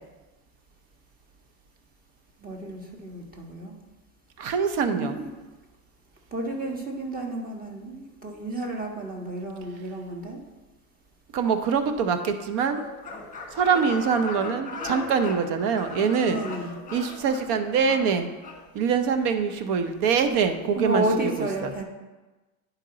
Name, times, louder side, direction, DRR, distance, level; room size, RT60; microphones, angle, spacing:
voice 1, 2.4-3.7 5.0-5.3 6.3-10.4 16.2-16.7 20.8-21.8, right 1 dB, 20° right, 1 dB, 1.5 m, -31 dB
voice 2, 4.4-5.2 11.3-12.8 13.5-16.4 16.9-18.3 18.7-21.7, right 6 dB, 65° right, 8 dB, 0.9 m, -24 dB
sound 1, 12.6-18.6, left 3 dB, 20° left, 1.5 m, -38 dB
10.5 x 4.5 x 3.9 m, 1.2 s
supercardioid pair, 110°, 43 cm